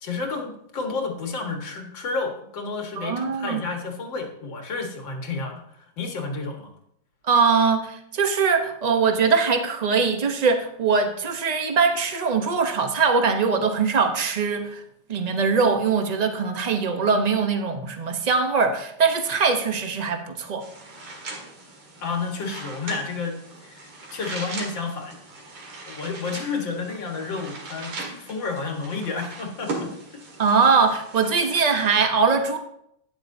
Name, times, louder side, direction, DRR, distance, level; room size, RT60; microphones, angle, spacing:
voice 1, 0.0-6.7 22.0-25.2 25.9-29.9, left 4 dB, 75° left, 2 dB, 2.2 m, -31 dB
voice 2, 3.0-3.6 7.3-14.8 15.1-20.6 30.4-32.6, right 5 dB, 40° right, 5 dB, 0.6 m, -22 dB
sound 1, 20.6-31.9, right 2 dB, 85° right, 2.7 m, -39 dB
12.0 x 9.5 x 2.7 m, 0.73 s
omnidirectional pair, 2.1 m